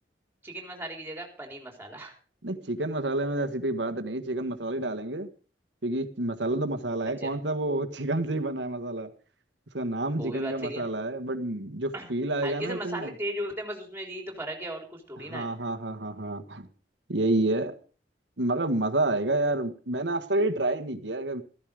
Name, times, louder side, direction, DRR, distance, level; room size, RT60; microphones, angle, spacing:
voice 1, 0.4-2.1 7.2-7.4 10.1-10.8 11.9-12.1 12.4-15.5, right 1 dB, 15° right, 4.0 m, -36 dB
voice 2, 2.4-5.3 5.8-9.1 9.7-13.1 15.3-16.7 17.1-17.7 18.4-21.4, right 2 dB, 75° right, 1.6 m, -29 dB
14.0 x 14.0 x 5.1 m
head